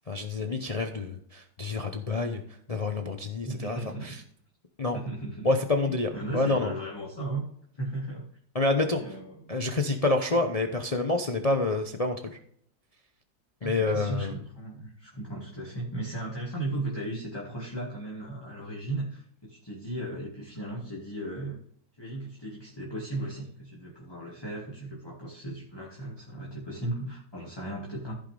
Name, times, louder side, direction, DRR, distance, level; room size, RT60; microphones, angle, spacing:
voice 1, 0.1-2.4 2.7-4.2 4.8-5.0 5.4-6.7 8.5-9.0 9.5-12.2 13.6-14.4, left 2 dB, 45° left, 5 dB, 0.4 m, -28 dB
voice 2, 3.4-4.2 4.9-7.4 7.7-8.3 8.9-9.6 10.3-10.4 13.6-21.6 22.0-28.2, right 2 dB, 15° left, -4 dB, 1.9 m, -36 dB
15.0 x 5.7 x 3.4 m, 0.65 s
omnidirectional pair, 1.9 m